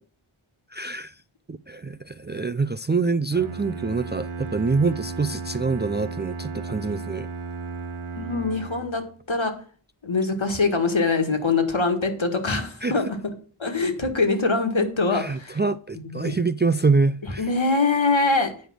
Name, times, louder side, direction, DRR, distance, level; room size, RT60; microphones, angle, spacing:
voice 1, 0.7-1.1 1.5-7.3 12.8-12.9 15.1-17.4, right 4 dB, 25° right, 0.3 m, -25 dB
Bowed string instrument, 3.3-9.2, right 4 dB, 90° right, 1.1 m, -35 dB
voice 2, 8.2-9.0 9.3-9.5 10.0-13.2 13.6-15.6 16.0-16.4 17.4-18.5, left 3 dB, 70° left, 1.7 m, -23 dB
9.2 x 5.1 x 6.2 m
wide cardioid pair, 45°, 49 cm